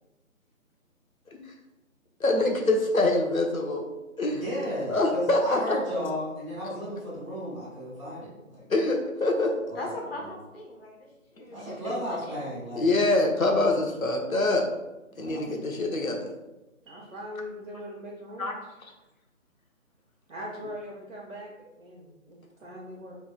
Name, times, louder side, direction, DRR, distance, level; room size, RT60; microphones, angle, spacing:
voice 1, 2.2-3.9 4.2-4.4 4.9-5.8 8.7-9.5 11.4-11.5 12.7-14.7 15.2-16.3 18.4-18.5, left 2 dB, 85° left, 2 dB, 1.0 m, -25 dB
voice 2, 4.3-8.6 9.8-9.9 11.5-13.0 15.1-15.4, equal, 10° right, -16 dB, 1.2 m, -34 dB
voice 3, 9.7-11.1 11.4-12.4, left 1 dB, 45° left, -2 dB, 1.2 m, -40 dB
voice 4, 11.5-11.9 16.9-18.6 20.3-23.2, equal, 70° right, -5 dB, 1.0 m, -41 dB
5.0 x 3.4 x 2.3 m, 1.0 s
figure-of-eight pair, 155°, 41 cm